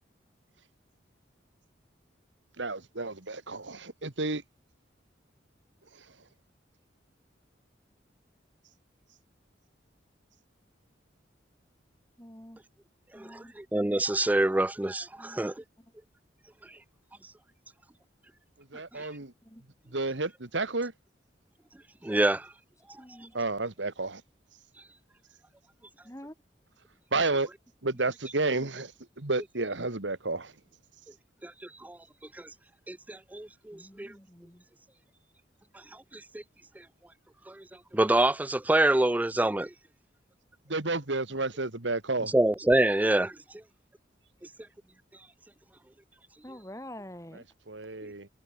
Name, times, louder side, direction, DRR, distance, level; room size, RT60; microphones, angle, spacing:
voice 1, 2.6-4.4 18.7-19.3 19.9-20.9 23.3-24.2 27.1-27.5 27.8-28.9 29.2-30.5 40.7-42.3 47.3-48.3, right 3 dB, 85° right, 2.2 m, -31 dB
voice 2, 12.2-12.6 13.1-13.5 15.2-15.5 19.4-19.6 23.0-23.3 26.0-26.3 33.7-34.6 46.4-47.4, left 1 dB, 15° left, 7.5 m, -46 dB
voice 3, 13.1-15.5 18.9-19.0 22.0-22.5 31.4-31.5 31.8-32.0 32.3-32.5 32.9-34.1 36.1-36.4 37.5-37.6 37.9-39.7 42.3-43.4 48.0-48.1, right 1 dB, 10° right, 0.3 m, -26 dB
head